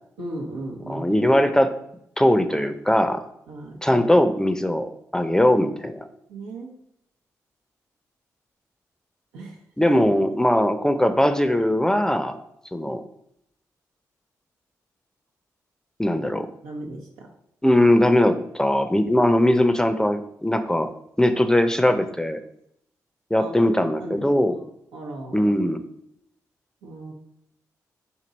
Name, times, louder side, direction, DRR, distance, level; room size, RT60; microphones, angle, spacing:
voice 1, 0.2-1.1 3.5-4.1 6.3-6.7 9.3-9.6 9.9-10.0 16.6-17.3 23.4-24.6 24.9-25.5 26.8-27.1, right 2 dB, 90° right, -1 dB, 0.7 m, -36 dB
voice 2, 0.9-1.7 2.2-3.2 3.8-6.1 9.8-12.4 12.7-13.0 16.0-16.5 17.6-20.9 21.2-22.4 23.3-24.5 25.3-25.8, left 1 dB, 10° left, 9 dB, 0.5 m, -20 dB
4.5 x 2.8 x 3.9 m, 0.75 s
hypercardioid pair, 40°, 7 cm